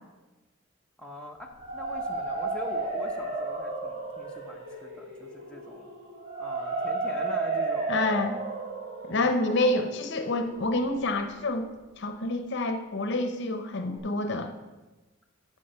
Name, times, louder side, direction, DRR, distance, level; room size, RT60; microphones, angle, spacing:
voice 1, 1.0-5.9 6.4-8.0 9.1-9.3, left 1 dB, 5° left, -1 dB, 0.9 m, -43 dB
sound 1, 1.4-11.3, right 3 dB, 30° right, 3.6 m, -33 dB
voice 2, 7.9-8.4 9.1-11.6 12.0-14.5, left 2 dB, 60° left, 7 dB, 0.8 m, -28 dB
14.5 x 5.1 x 5.7 m, 1.2 s
head